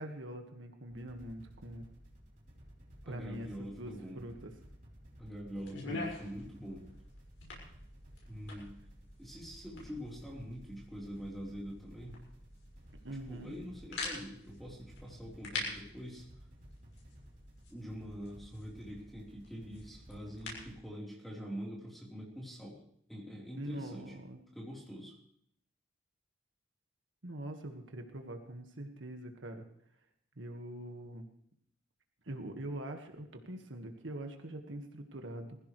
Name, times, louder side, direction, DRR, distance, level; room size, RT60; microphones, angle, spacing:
voice 1, 0.0-1.9 3.0-4.5 13.0-13.5 23.6-24.4 27.2-29.6 30.3-31.3 32.2-35.6, right 1 dB, 85° right, 4 dB, 1.7 m, -43 dB
sound 1, 0.9-20.8, equal, 45° right, 3.9 m, -56 dB
voice 2, 3.0-4.2 5.2-6.8 8.3-8.8 9.2-12.2 13.3-16.3 17.7-22.8 23.1-24.1 24.5-25.2, equal, ahead, -4 dB, 3.9 m, -44 dB
sound 2, 5.5-20.8, left 3 dB, 90° left, 5.9 m, -47 dB
21.0 x 15.5 x 3.3 m, 0.68 s
head